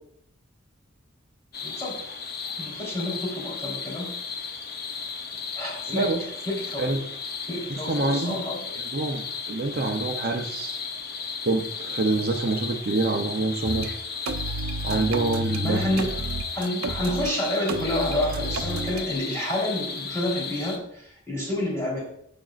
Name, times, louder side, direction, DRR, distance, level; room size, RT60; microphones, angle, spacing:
sound 1, 1.5-20.8, left 5 dB, 45° left, 0.7 m, -35 dB
voice 1, 1.6-2.0 2.6-4.1 5.6-6.1 6.5-6.9 7.5-8.8 14.9-15.1 15.5-16.2 16.5-22.0, left 1 dB, 15° left, -5 dB, 3.6 m, -29 dB
voice 2, 5.9-6.2 6.8-7.0 7.9-8.4 8.9-10.8 11.4-14.0 14.8-16.1, right 2 dB, 45° right, 2 dB, 0.7 m, -26 dB
sound 2, 13.6-13.9 14.3-17.3 17.7-19.0, right 2 dB, 90° right, 0.7 m, -31 dB
15.0 x 5.2 x 2.5 m, 0.70 s
head